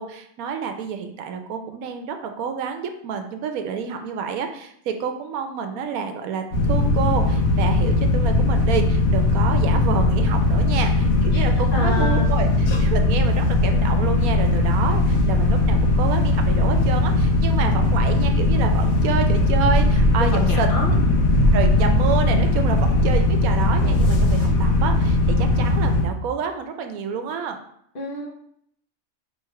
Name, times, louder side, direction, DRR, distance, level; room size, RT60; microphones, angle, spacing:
voice 1, 0.0-20.7 21.5-27.6, right 6 dB, 85° right, 6 dB, 1.1 m, -28 dB
sound 1, 6.5-26.0, left 2 dB, 80° left, 1.3 m, -19 dB
voice 2, 11.3-12.2 20.3-20.9 27.9-28.3, left 2 dB, 45° left, -1 dB, 0.8 m, -29 dB
3.5 x 3.1 x 4.6 m, 0.69 s
omnidirectional pair, 1.5 m